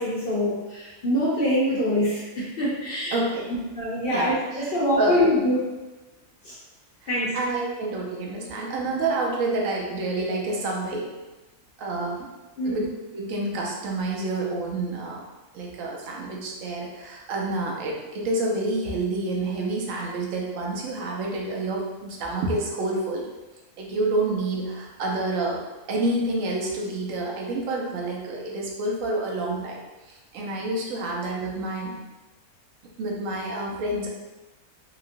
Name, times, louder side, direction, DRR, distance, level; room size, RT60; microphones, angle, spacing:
voice 1, 0.0-3.2 3.8-5.6 6.4-6.5 7.1-7.4 12.6-12.8, equal, 65° left, -7 dB, 0.6 m, -24 dB
voice 2, 3.1-3.5 4.1-4.7 5.0-5.2 7.0-11.1 11.8-12.3 12.6-12.9 13.1-15.2 15.5-23.3 23.8-25.6 25.9-29.8 30.1-32.0 33.0-34.1, right 2 dB, 70° right, -2 dB, 0.9 m, -28 dB
2.8 x 2.4 x 2.5 m, 1.1 s
omnidirectional pair, 1.6 m